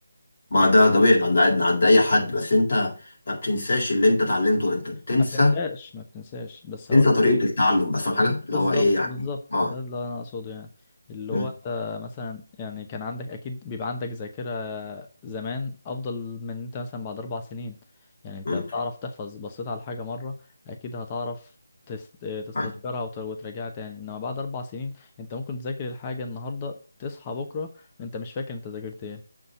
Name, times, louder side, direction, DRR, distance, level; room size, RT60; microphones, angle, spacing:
voice 1, 0.5-3.0 3.3-5.5 6.9-9.1 9.5-9.7 11.3-11.5 18.4-18.6 22.5-22.7, left 2 dB, 50° left, -2 dB, 4.2 m, -20 dB
voice 2, 5.2-7.1 8.2-10.7 11.1-17.7 18.2-20.4 20.7-21.5 21.9-29.2, left 3 dB, 20° left, 5 dB, 0.8 m, -34 dB
7.5 x 4.2 x 6.6 m, 0.35 s
figure-of-eight pair, 170°, 0 cm